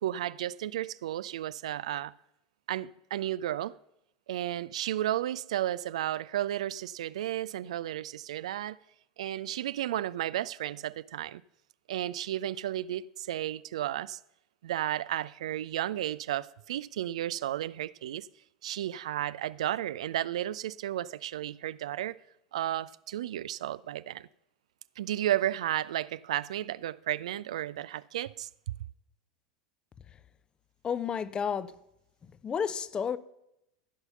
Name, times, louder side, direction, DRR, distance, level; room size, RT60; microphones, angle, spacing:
voice 1, 0.0-2.1 2.7-3.8 4.3-8.8 9.2-11.4 11.9-14.2 14.6-18.3 18.6-22.2 22.5-24.3 25.0-28.7, right 12 dB, 65° right, 0.3 m, -33 dB
voice 2, 30.8-31.7 32.2-33.2, left 7 dB, 25° left, 0.6 m, -31 dB
15.0 x 5.6 x 6.9 m
figure-of-eight pair, 80°, 4 cm